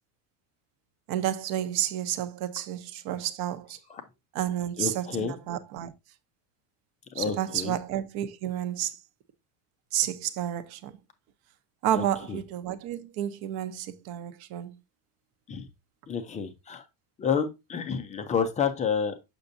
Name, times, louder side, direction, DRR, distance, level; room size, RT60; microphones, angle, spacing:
voice 1, 1.1-3.8 4.3-5.9 7.2-9.0 9.9-11.0 11.8-14.7, right 11 dB, 50° right, 0.8 m, -31 dB
voice 2, 4.8-5.4 7.1-7.7 11.9-12.4 15.5-15.7 16.1-16.9 17.2-19.3, left 6 dB, 15° left, 0.3 m, -30 dB
6.7 x 5.9 x 2.6 m
supercardioid pair, 140°, 50 cm